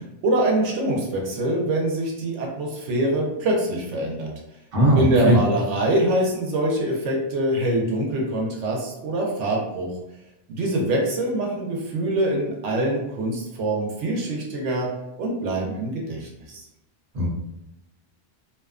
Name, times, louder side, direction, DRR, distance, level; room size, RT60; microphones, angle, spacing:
voice 1, 0.0-4.3 4.9-9.9 10.5-14.9 15.2-16.7, right 1 dB, 80° right, -1 dB, 0.9 m, -24 dB
voice 2, 4.7-5.4 17.1-17.3, equal, 50° right, -3 dB, 0.8 m, -18 dB
2.6 x 2.1 x 2.3 m, 0.91 s
omnidirectional pair, 1.2 m